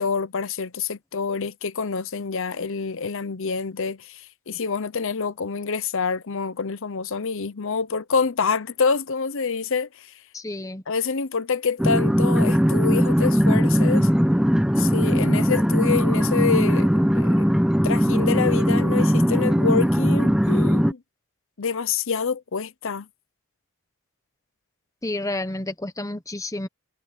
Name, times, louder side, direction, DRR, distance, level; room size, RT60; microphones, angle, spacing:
voice 1, 0.0-10.1 10.9-14.1 14.8-16.9 17.1-17.5 17.8-21.0 21.6-23.1, left 5 dB, 65° left, 0.8 m, -27 dB
voice 2, 10.3-10.8 25.0-26.7, left 2 dB, 15° left, 1.0 m, -30 dB
sound 1, 11.8-20.9, equal, 5° right, 1.1 m, -19 dB
head